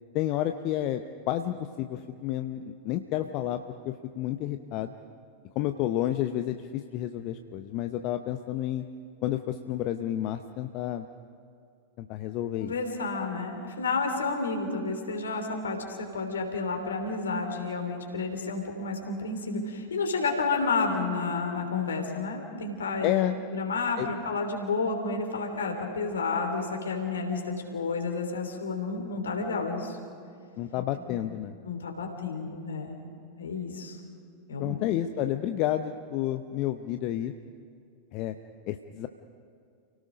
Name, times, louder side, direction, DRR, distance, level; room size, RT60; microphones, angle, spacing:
voice 1, 0.1-4.9 5.6-8.8 9.2-11.1 12.0-12.7 23.0-23.4 24.0-24.1 30.6-31.5 34.6-37.3 38.1-38.4 38.7-39.1, left 12 dB, 40° left, 8 dB, 0.7 m, -30 dB
voice 2, 12.6-23.1 23.5-30.0 31.1-31.2 31.7-33.0 33.4-34.0 34.5-34.9, left 4 dB, 70° left, 3 dB, 3.3 m, -31 dB
29.5 x 18.0 x 5.2 m, 2.4 s
figure-of-eight pair, 90°, 0 cm